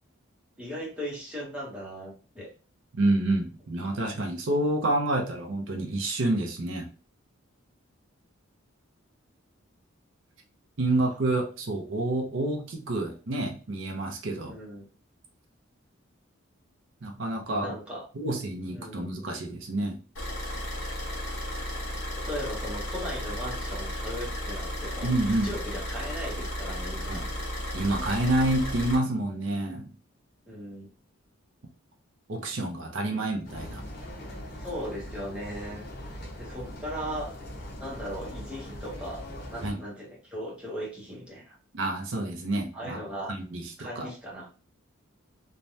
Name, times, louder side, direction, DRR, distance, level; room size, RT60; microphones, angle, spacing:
voice 1, 0.6-2.5 14.5-14.9 17.6-18.1 18.7-19.1 22.2-27.2 30.4-30.9 34.6-35.8 36.4-37.3 37.8-39.2 39.5-41.6 42.7-43.3 43.8-44.5, equal, 5° right, -5 dB, 0.8 m, -38 dB
voice 2, 2.9-6.9 10.8-14.5 17.0-17.7 18.1-20.0 25.0-25.5 27.1-27.3 27.7-29.9 32.3-33.8 39.6-39.8 41.7-43.0 43.3-44.1, right 2 dB, 65° right, 2 dB, 0.6 m, -28 dB
Car / Idling, 20.1-29.0, equal, 65° left, 1.2 m, -34 dB
sound 1, 33.4-39.7, equal, 50° left, 0.9 m, -40 dB
3.2 x 2.2 x 2.6 m, 0.37 s
head